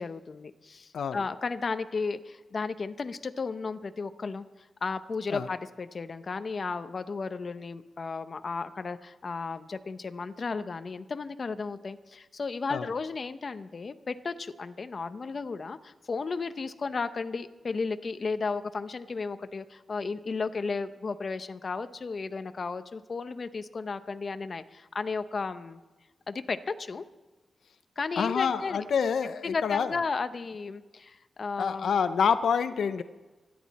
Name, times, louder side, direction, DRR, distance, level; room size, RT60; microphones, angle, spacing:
voice 1, 0.0-4.4 4.8-25.8 26.3-27.0 28.0-28.8 29.4-31.9, left 4 dB, 45° left, 10 dB, 0.7 m, -34 dB
voice 2, 28.2-30.0 31.6-33.0, left 6 dB, 85° left, 11 dB, 0.6 m, -27 dB
25.5 x 10.5 x 4.2 m, 1.2 s
wide cardioid pair, 105°, 0 cm